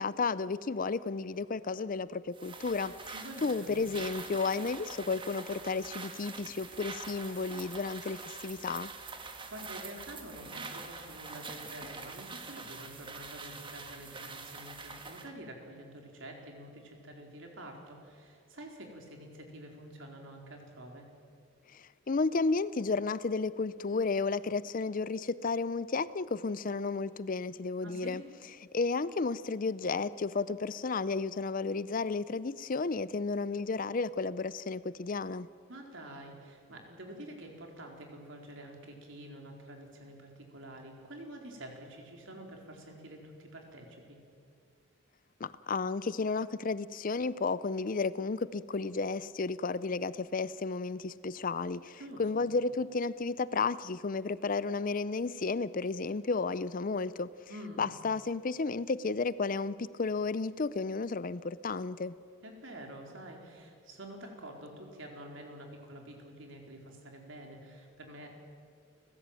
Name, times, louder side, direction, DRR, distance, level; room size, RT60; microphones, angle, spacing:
voice 1, 0.0-2.9 3.4-8.9 21.7-28.2 28.7-35.5 45.4-57.3 57.8-62.2, left 4 dB, 40° left, 17 dB, 0.5 m, -32 dB
sound 1, 2.3-15.3, right 4 dB, 25° right, 1.7 m, -45 dB
voice 2, 3.1-3.7 9.5-21.1 27.8-28.2 35.7-44.2 52.0-52.5 57.5-57.9 62.4-68.3, right 1 dB, 65° right, 2 dB, 4.4 m, -48 dB
30.0 x 15.5 x 9.1 m, 2.3 s
head